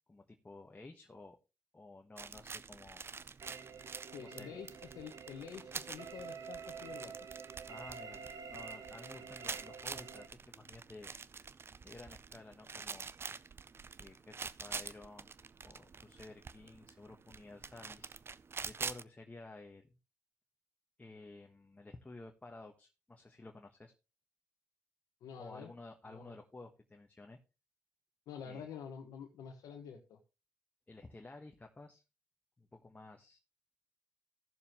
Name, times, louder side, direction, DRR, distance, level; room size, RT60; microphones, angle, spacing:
voice 1, 0.1-1.4 1.7-3.1 4.2-4.6 7.7-11.1 11.8-13.1 14.0-15.3 15.6-18.1 18.6-19.9 21.0-23.9 25.4-27.4 28.4-28.7 30.9-32.0 32.6-33.4, left 2 dB, 25° left, 3 dB, 1.3 m, -53 dB
sound 1, 2.2-19.0, right 5 dB, 40° right, 0.5 m, -47 dB
sound 2, 3.4-10.3, right 6 dB, 70° right, 1.1 m, -49 dB
voice 2, 4.1-7.1 25.2-25.7 26.1-26.4 28.3-30.2, left 7 dB, 90° left, 1 dB, 1.3 m, -48 dB
15.5 x 6.8 x 3.0 m, 0.29 s
cardioid pair, 60°, 6 cm